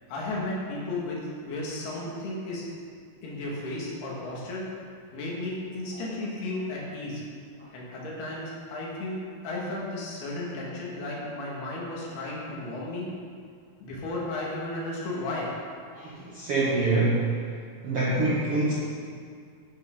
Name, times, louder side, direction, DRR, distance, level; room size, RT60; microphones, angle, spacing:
voice 1, 0.1-2.6 3.2-4.7 5.1-7.2 7.7-13.1 13.8-15.5, left 2 dB, 80° left, -4 dB, 4.0 m, -34 dB
voice 2, 15.9-17.2 17.8-18.7, right 2 dB, 70° right, -5 dB, 1.4 m, -25 dB
12.0 x 9.8 x 3.9 m, 2.2 s
omnidirectional pair, 4.5 m